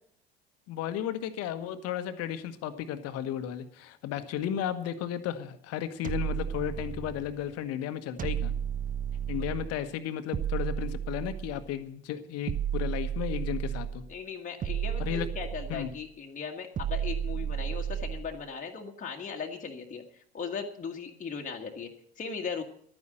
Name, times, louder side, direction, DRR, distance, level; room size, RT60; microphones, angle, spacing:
voice 1, 0.7-8.5 9.3-14.0 15.0-15.3 15.7-15.9, left 10 dB, 50° left, 10 dB, 1.3 m, -34 dB
sound 1, 6.0-7.4 8.2-9.8 10.3-11.7 12.5-14.1 14.6-16.0 16.8-18.4, right 9 dB, 25° right, 0.7 m, -33 dB
voice 2, 14.1-22.6, left 5 dB, 25° left, 0 dB, 1.7 m, -38 dB
12.0 x 9.6 x 7.6 m, 0.63 s
hypercardioid pair, 70°, 31 cm